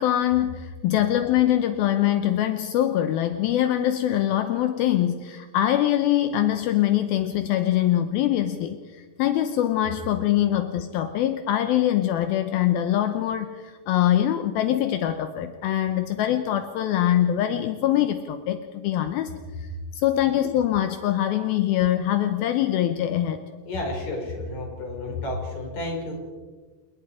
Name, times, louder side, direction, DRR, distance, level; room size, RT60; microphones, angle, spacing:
voice 1, 0.0-19.3 19.6-23.4, left 12 dB, 75° left, 9 dB, 2.6 m, -23 dB
voice 2, 23.6-26.1, left 2 dB, 45° left, 0 dB, 6.5 m, -31 dB
29.0 x 19.5 x 5.0 m, 1.4 s
omnidirectional pair, 4.5 m